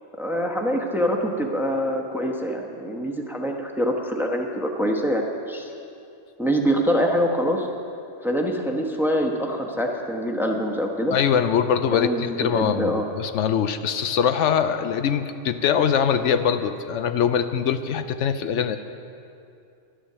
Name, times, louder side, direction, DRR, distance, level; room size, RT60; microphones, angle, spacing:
voice 1, 0.2-5.7 6.4-7.7 8.2-11.2 11.9-13.1, equal, ahead, 1 dB, 0.9 m, -25 dB
voice 2, 11.1-18.8, left 8 dB, 80° left, 10 dB, 0.9 m, -23 dB
11.5 x 11.0 x 6.7 m, 2.5 s
omnidirectional pair, 1.2 m